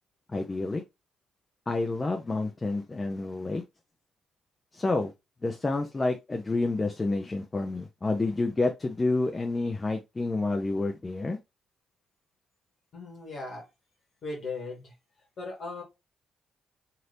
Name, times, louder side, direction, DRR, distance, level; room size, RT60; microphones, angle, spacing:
voice 1, 0.3-0.8 1.7-3.6 4.7-5.1 5.4-11.4, left 2 dB, 30° left, 0.6 m, -29 dB
voice 2, 12.9-13.6 14.2-14.9 15.4-15.8, left 3 dB, 55° left, 1.3 m, -37 dB
3.2 x 2.8 x 2.6 m
hypercardioid pair, 40°, 0 cm